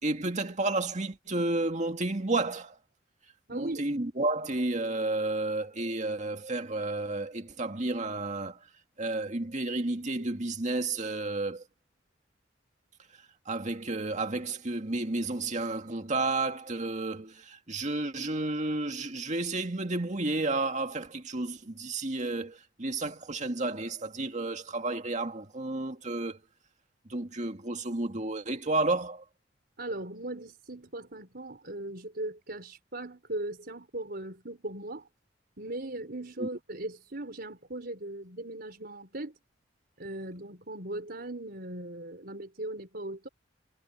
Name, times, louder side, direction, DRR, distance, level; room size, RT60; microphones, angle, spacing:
voice 1, 0.0-2.8 3.5-8.7 9.0-11.7 13.5-26.4 27.1-29.2 36.4-36.5, right 2 dB, 40° right, 2.0 m, -31 dB
voice 2, 3.5-3.8 29.8-35.1 35.6-39.3 40.0-43.3, right 1 dB, 55° right, 5.0 m, -38 dB
head